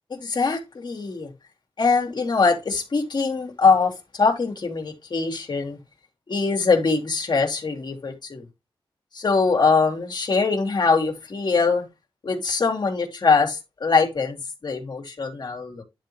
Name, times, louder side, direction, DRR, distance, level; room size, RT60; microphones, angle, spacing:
voice 1, 0.1-1.3 1.8-5.8 6.3-8.5 9.1-11.9 12.2-15.8, left 4 dB, 50° left, 3.4 m, -22 dB
11.0 x 4.0 x 3.3 m
wide cardioid pair, 105°, 9 cm